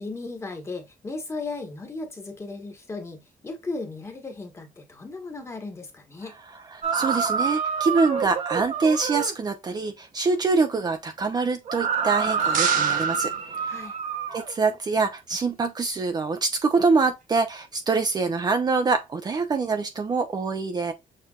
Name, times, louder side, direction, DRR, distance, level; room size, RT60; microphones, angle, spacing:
voice 1, 0.0-6.4 13.7-13.9, left 3 dB, 20° left, 1.4 m, -36 dB
sound 1, 6.8-9.3 11.7-14.5, right 6 dB, 55° right, 1.2 m, -26 dB
voice 2, 6.9-13.3 13.6-13.7 14.3-20.9, right 4 dB, 30° right, 0.7 m, -25 dB
sound 2, 12.0-14.2, right 8 dB, 80° right, 1.0 m, -32 dB
6.6 x 3.3 x 2.4 m
cardioid pair, 155°, 14 cm